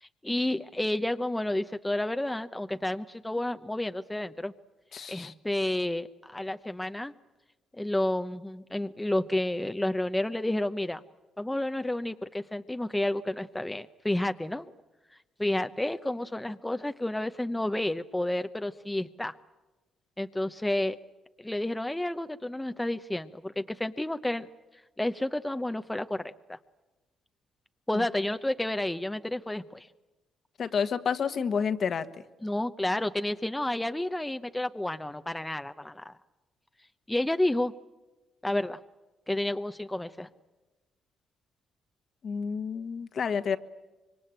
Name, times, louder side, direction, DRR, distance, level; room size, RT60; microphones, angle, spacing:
voice 1, 0.0-4.5 5.1-7.1 7.8-11.0 11.4-14.6 15.4-19.3 20.2-21.0 21.4-24.5 25.0-26.6 27.9-29.9 32.4-36.1 37.1-37.7 38.4-38.8 39.3-40.3, left 1 dB, 10° left, 8 dB, 0.8 m, -30 dB
voice 2, 4.9-5.3 27.9-28.0 30.6-32.1 42.2-43.6, left 6 dB, 50° left, 10 dB, 1.4 m, -29 dB
25.5 x 23.0 x 8.9 m, 1.1 s
cardioid pair, 90°, 0 cm